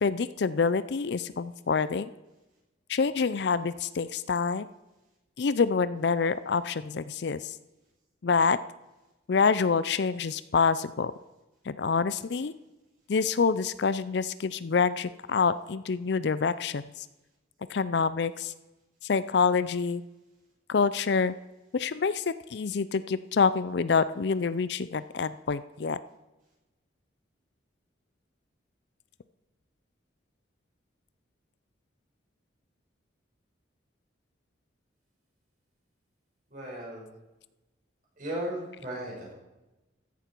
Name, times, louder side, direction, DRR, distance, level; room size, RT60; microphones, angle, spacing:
voice 1, 0.0-2.1 2.9-4.7 5.4-7.5 8.2-8.6 9.3-11.1 11.7-12.5 13.1-16.8 17.7-18.5 19.0-20.0 20.7-21.3 21.7-26.0, left 5 dB, 55° left, 15 dB, 0.4 m, -26 dB
voice 2, 36.5-37.1 38.2-39.3, right 1 dB, 45° right, -3 dB, 5.3 m, -36 dB
14.5 x 10.5 x 4.5 m, 1.0 s
head